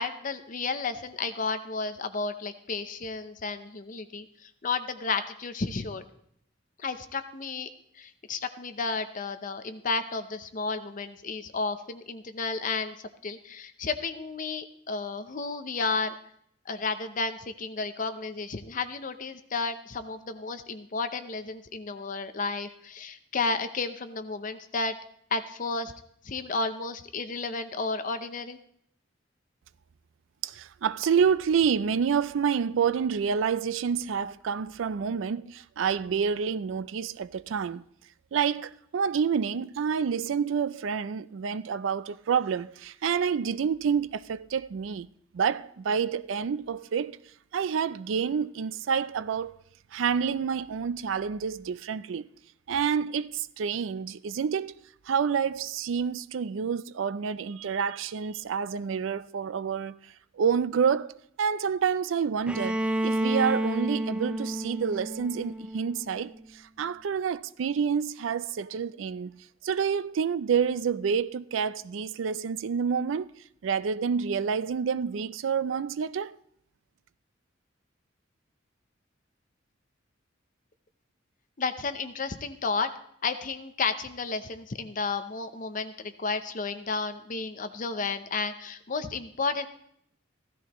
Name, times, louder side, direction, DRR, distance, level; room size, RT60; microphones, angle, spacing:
voice 1, 0.0-6.0 6.8-7.7 7.9-16.1 16.7-24.9 25.3-25.9 26.2-28.6 81.6-82.9 83.2-89.7, left 4 dB, 45° left, 0.6 m, -32 dB
voice 2, 30.4-37.8 38.3-45.1 45.3-47.2 47.5-49.6 49.9-52.3 52.7-54.7 55.1-60.0 60.3-61.1 61.4-73.3 73.6-76.4, right 6 dB, 80° right, 0.4 m, -28 dB
Bowed string instrument, 62.5-66.3, right 1 dB, 5° right, 0.4 m, -30 dB
15.5 x 13.0 x 3.0 m
head